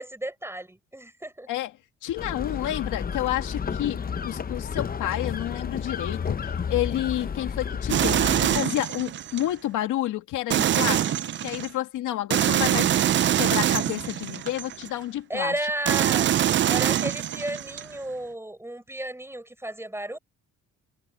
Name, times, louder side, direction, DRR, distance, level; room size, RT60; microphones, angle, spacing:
voice 1, 0.0-1.5 15.3-16.4 16.7-20.2, right 1 dB, 10° right, 7.0 m, -33 dB
voice 2, 2.0-15.6, left 14 dB, 85° left, 2.3 m, -30 dB
sound 1, 2.2-8.6, left 6 dB, 30° left, 0.8 m, -31 dB
sound 2, 7.9-9.4 10.5-11.7 12.3-14.9 15.9-17.9, right 11 dB, 40° right, 0.4 m, -24 dB
cardioid pair, 90°, 30 cm